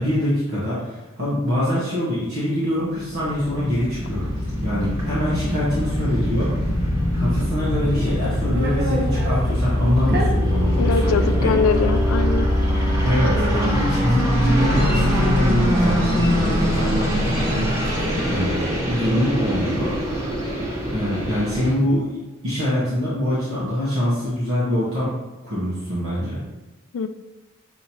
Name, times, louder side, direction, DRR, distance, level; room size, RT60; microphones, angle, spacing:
voice 1, 0.0-4.3 4.6-6.5 7.2-11.5 13.0-17.7 18.0-18.6 18.9-19.9 20.9-25.1 25.4-26.4, equal, 75° right, -9 dB, 1.1 m, -24 dB
sound 1, 2.9-21.7, equal, 15° right, 1.1 m, -22 dB
Meow, 7.8-9.4 10.1-10.3 11.1-11.2 11.6-11.8 12.8-13.0 13.3-13.9 14.5-15.2 16.0-16.7 17.4-18.1, right 1 dB, 45° right, 0.8 m, -32 dB
voice 2, 10.8-12.5 26.9-27.1, left 5 dB, 75° left, 10 dB, 0.3 m, -22 dB
6.1 x 2.8 x 2.8 m, 1.1 s
head